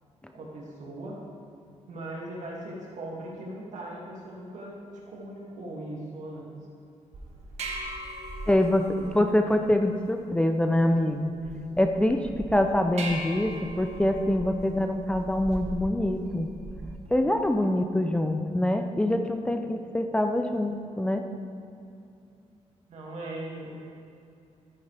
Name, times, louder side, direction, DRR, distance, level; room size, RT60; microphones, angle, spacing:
voice 1, 0.3-1.2 1.9-6.5 22.9-23.7, right 1 dB, 85° right, -4 dB, 2.2 m, -39 dB
sound 1, 7.1-17.1, right 1 dB, 65° right, 1.4 m, -40 dB
voice 2, 8.5-11.3 11.8-16.5 17.1-21.2, left 1 dB, 10° left, 5 dB, 0.5 m, -25 dB
13.0 x 9.6 x 3.4 m, 2.5 s
wide cardioid pair, 145°, 12 cm